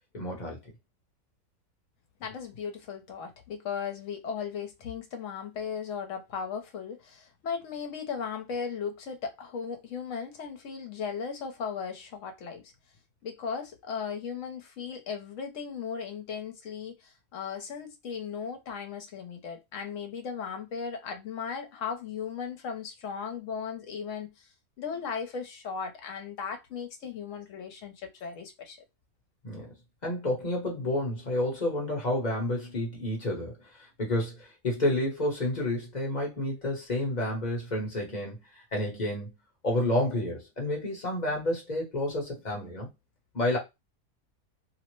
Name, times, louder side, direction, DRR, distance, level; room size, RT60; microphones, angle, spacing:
voice 1, 0.1-0.6 29.4-29.7 30.0-33.6 34.0-38.4 38.7-39.4 39.6-42.9 43.3-43.6, left 1 dB, 35° left, 0.9 m, -30 dB
voice 2, 2.2-12.7 13.2-24.5 24.8-28.8, left 6 dB, 65° left, 1.0 m, -37 dB
2.8 x 2.0 x 3.0 m
omnidirectional pair, 1.5 m